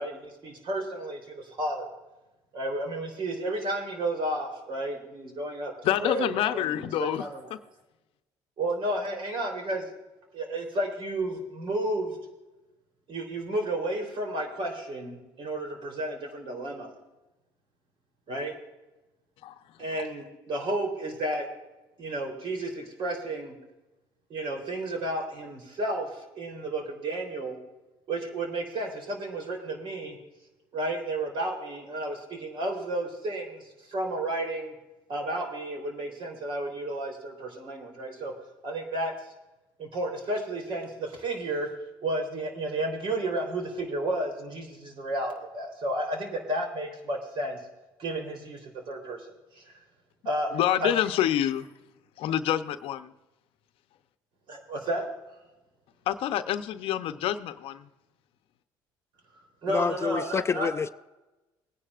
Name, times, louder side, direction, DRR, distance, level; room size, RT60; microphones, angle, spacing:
voice 1, 0.0-1.9 2.5-5.7 6.0-7.4 8.6-9.9 10.3-12.2 13.1-16.9 18.3-18.5 19.8-21.5 22.0-23.6 24.3-27.6 28.1-30.2 30.7-33.6 33.9-34.7 35.1-38.3 38.6-39.1 39.8-41.7 42.0-47.6 48.0-49.2 49.6-49.7 50.3-50.5 50.8-50.9 54.5-55.1 59.6-60.7, right 1 dB, 60° right, 3.6 m, -32 dB
voice 2, 5.8-7.6 19.4-19.6 50.5-51.7 52.2-53.1 56.1-57.9, left 11 dB, 65° left, 0.7 m, -27 dB
voice 3, 59.7-60.9, left 5 dB, 25° left, 0.3 m, -28 dB
21.5 x 9.9 x 2.5 m
supercardioid pair, 85°, 10 cm